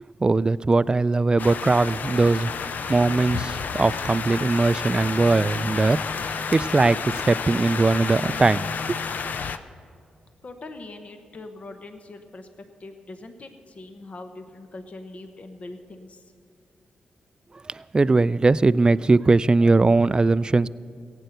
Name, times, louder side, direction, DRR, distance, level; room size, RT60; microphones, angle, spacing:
voice 1, 0.2-2.5 2.9-9.1 17.6-20.7, right 3 dB, 25° right, 18 dB, 0.3 m, -20 dB
sound 1, 1.4-9.6, left 6 dB, 65° left, 0.6 m, -30 dB
voice 2, 10.4-12.5 12.8-16.2, left 2 dB, 45° left, 7 dB, 1.0 m, -41 dB
15.5 x 9.1 x 6.6 m, 2.3 s
supercardioid pair, 55°, 3 cm